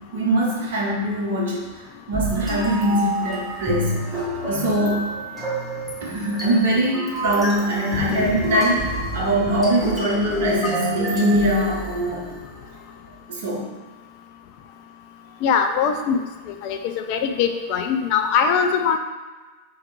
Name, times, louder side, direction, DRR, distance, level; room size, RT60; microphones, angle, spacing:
voice 1, 0.1-5.1 6.0-12.3 13.3-13.7, right 1 dB, 55° right, -4 dB, 1.0 m, -23 dB
sound 1, 2.1-12.4, right 1 dB, 10° right, 1.3 m, -28 dB
voice 2, 15.4-16.2 16.5-19.0, left 6 dB, 45° left, 6 dB, 0.4 m, -21 dB
3.4 x 3.1 x 4.7 m, 1.3 s
figure-of-eight pair, 90°, 0 cm